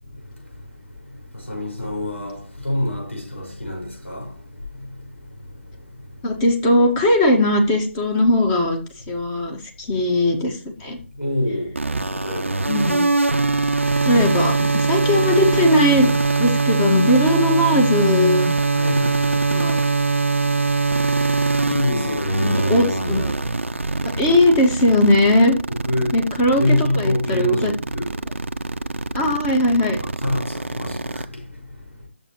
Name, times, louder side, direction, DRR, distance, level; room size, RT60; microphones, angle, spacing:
voice 1, 1.5-2.4 2.6-4.3 11.2-11.7 12.2-12.6 18.7-19.4 21.7-23.2 25.9-26.1 26.6-28.1 30.2-31.2, left 1 dB, 80° left, 5.8 m, -25 dB
voice 2, 6.2-8.8 9.1-11.0 12.7-13.1 14.0-16.1 16.4-18.5 19.5-19.8 21.9-22.1 22.4-23.2 24.2-25.5 26.1-27.7 29.1-30.0, left 1 dB, 20° left, 2.1 m, -19 dB
sound 1, 11.8-31.2, right 3 dB, 80° right, 0.8 m, -22 dB
12.5 x 7.3 x 3.2 m
figure-of-eight pair, 145°, 7 cm